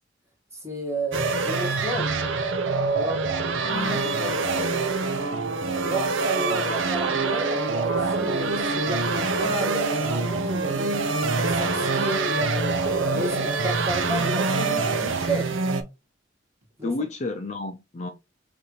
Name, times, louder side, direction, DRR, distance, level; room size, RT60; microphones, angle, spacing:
voice 1, 0.5-2.2 2.9-3.2 5.8-10.9 11.4-12.8 13.1-15.5 16.8-16.9, right 1 dB, 15° right, 1.6 m, -32 dB
sound 1, 1.1-15.8, right 3 dB, 85° right, 0.7 m, -25 dB
voice 2, 3.6-4.8 16.8-18.1, left 3 dB, 35° left, 0.4 m, -32 dB
5.6 x 2.6 x 3.1 m
head